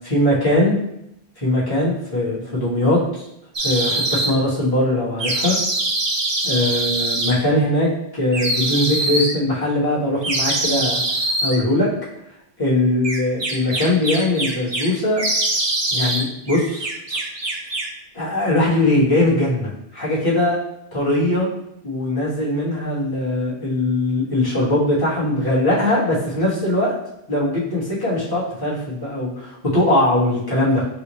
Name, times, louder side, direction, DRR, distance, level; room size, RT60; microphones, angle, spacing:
voice 1, 0.0-0.7 1.4-3.2 3.6-5.6 6.4-11.0 11.4-11.9 12.6-15.2 15.9-16.9 18.1-20.6 20.9-21.5 21.8-26.9 27.3-30.9, left 1 dB, 20° left, -7 dB, 1.4 m, -20 dB
sound 1, 3.5-4.3 5.2-7.3 8.3-9.3 10.2-11.6 13.0-14.9 15.2-16.2 16.5-17.9, right 2 dB, 30° right, 0.5 m, -23 dB
6.4 x 2.4 x 3.1 m, 0.79 s
omnidirectional pair, 1.0 m